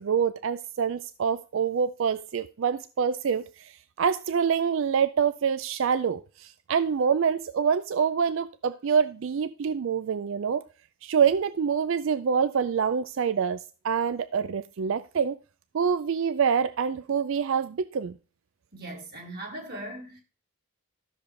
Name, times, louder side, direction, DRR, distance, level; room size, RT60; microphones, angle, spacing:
voice 1, 0.0-3.7 4.0-10.6 11.0-13.6 13.8-15.4 15.7-18.1, right 6 dB, 60° right, 0.4 m, -26 dB
voice 2, 18.7-20.2, right 1 dB, 45° right, 2.8 m, -39 dB
13.0 x 6.9 x 3.2 m
head